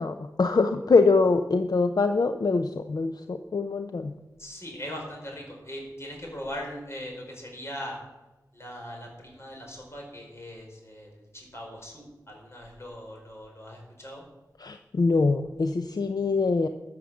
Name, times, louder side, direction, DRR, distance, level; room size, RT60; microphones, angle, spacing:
voice 1, 0.0-4.1 14.6-16.7, left 4 dB, 65° left, 8 dB, 0.6 m, -24 dB
voice 2, 4.4-8.0 8.5-14.2, equal, 40° left, 0 dB, 4.9 m, -40 dB
14.0 x 7.4 x 7.1 m, 1.1 s
wide cardioid pair, 65°, 7 cm